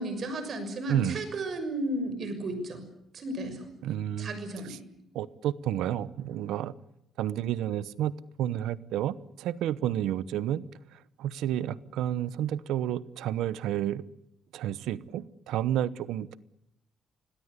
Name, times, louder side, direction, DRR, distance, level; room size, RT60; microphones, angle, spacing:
voice 1, 0.0-2.8 3.1-3.7 4.2-4.8, right 1 dB, 55° right, 9 dB, 6.4 m, -34 dB
voice 2, 0.9-1.2 3.8-4.3 4.7-4.8 5.1-6.7 7.2-8.1 8.4-10.6 11.2-14.0 14.5-16.4, right 11 dB, 90° right, 17 dB, 0.9 m, -30 dB
26.0 x 19.0 x 8.2 m, 0.82 s
cardioid pair, 90°, 0 cm